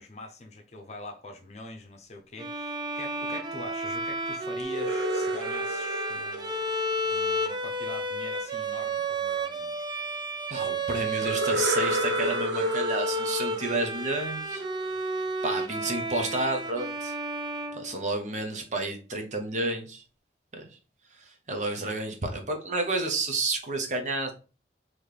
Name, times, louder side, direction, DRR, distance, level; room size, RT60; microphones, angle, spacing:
voice 1, 0.0-6.5 7.0-9.8, left 2 dB, 35° left, 0.7 m, -44 dB
Bowed string instrument, 2.4-18.4, right 1 dB, 25° right, 0.4 m, -32 dB
sound 1, 4.6-7.6 11.2-14.9, equal, 70° right, 0.6 m, -32 dB
voice 2, 10.5-14.6 15.4-17.1 17.7-20.0 20.5-20.6 21.1-24.3, right 2 dB, 40° right, 0.9 m, -30 dB
4.2 x 3.1 x 3.3 m
head